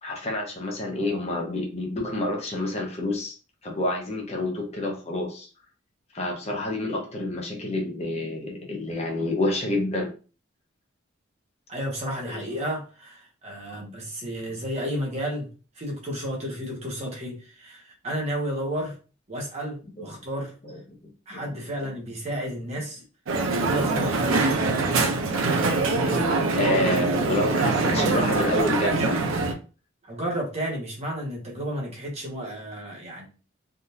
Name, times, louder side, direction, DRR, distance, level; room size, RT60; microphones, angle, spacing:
voice 1, 0.0-3.3 3.6-5.5 6.1-10.1 12.3-12.4 13.7-13.8 20.0-20.1 20.6-20.8 21.3-21.4 26.5-29.2, left 1 dB, 30° left, 0 dB, 0.7 m, -28 dB
voice 2, 11.7-19.0 19.3-20.5 21.3-23.0 23.5-24.6 30.1-33.3, equal, 35° right, -2 dB, 0.9 m, -32 dB
Crowd, 23.3-29.5, right 3 dB, 85° right, 0.6 m, -23 dB
3.5 x 2.4 x 2.8 m, 0.35 s
head